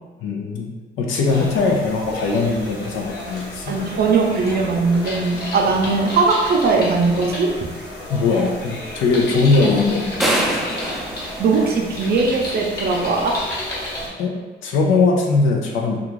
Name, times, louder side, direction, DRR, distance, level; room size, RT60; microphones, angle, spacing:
voice 1, 0.2-3.8 8.1-10.5 14.2-14.3 14.6-16.0, left 3 dB, 80° left, 0 dB, 0.5 m, -20 dB
sound 1, 1.2-14.1, left 1 dB, 55° left, 1.1 m, -32 dB
voice 2, 3.7-7.5 9.6-9.7 11.4-13.4, right 4 dB, 50° right, 1 dB, 0.5 m, -19 dB
sound 2, 10.2-12.4, right 1 dB, ahead, 0.4 m, -24 dB
2.4 x 2.3 x 3.0 m, 1.3 s
cardioid pair, 90°, 20 cm